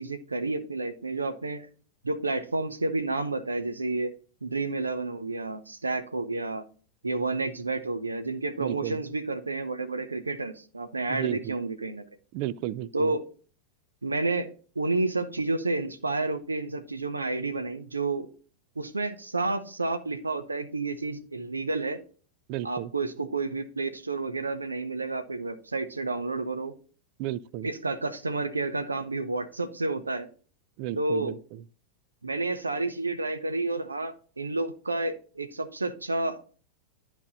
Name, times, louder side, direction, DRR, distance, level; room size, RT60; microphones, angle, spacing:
voice 1, 0.0-1.7 2.0-4.1 4.4-6.6 7.0-12.0 12.9-13.2 14.0-14.5 14.7-18.3 18.8-22.0 22.6-26.7 27.6-30.3 30.9-31.3 32.2-36.6, right 3 dB, 80° right, 0.8 m, -30 dB
voice 2, 8.6-9.0 11.1-11.6 12.3-13.1 22.5-22.9 27.2-27.7 30.8-31.6, right 13 dB, 45° right, 0.4 m, -33 dB
11.0 x 4.5 x 4.0 m
figure-of-eight pair, 90°, 0 cm